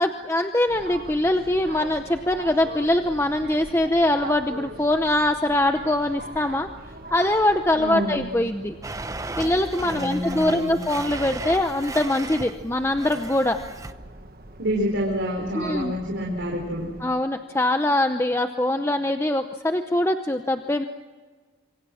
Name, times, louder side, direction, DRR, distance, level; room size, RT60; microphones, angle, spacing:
voice 1, 0.0-6.7 7.1-8.8 9.4-13.6 15.5-15.9 17.0-20.9, left 1 dB, 15° left, 7 dB, 0.7 m, -23 dB
sound 1, 0.7-17.0, right 2 dB, 50° right, 1.7 m, -42 dB
voice 2, 7.7-8.2 9.8-10.8 14.6-16.9, equal, 75° right, -2 dB, 4.7 m, -28 dB
Domestic sounds home sounds, 8.8-12.6 13.0-13.9, right 2 dB, 15° right, 0.8 m, -35 dB
26.5 x 24.5 x 6.4 m, 1.4 s
head